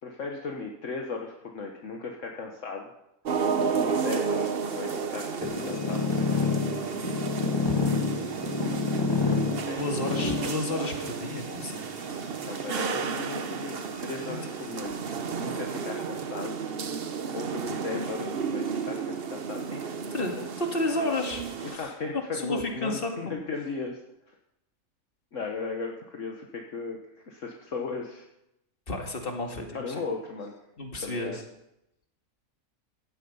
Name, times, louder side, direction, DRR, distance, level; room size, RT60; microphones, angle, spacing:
voice 1, 0.0-2.9 3.6-6.0 9.6-9.9 10.2-10.3 12.4-16.6 17.3-19.9 20.2-20.5 21.6-24.0 24.3-24.4 25.3-28.3 29.7-30.5 31.0-31.4, left 4 dB, 65° left, 1 dB, 1.7 m, -36 dB
sound 1, 3.2-21.8, right 6 dB, 50° right, 1.0 m, -32 dB
sound 2, 5.4-14.9 15.6-16.2 16.5-16.6 16.9-17.0 17.9-19.1, left 4 dB, 20° left, 1.7 m, -31 dB
voice 2, 9.7-12.4 14.2-14.4 20.1-23.1 28.9-30.0 30.8-31.4, left 2 dB, 40° left, 2 dB, 2.4 m, -32 dB
16.0 x 12.5 x 5.5 m, 0.85 s
omnidirectional pair, 1.4 m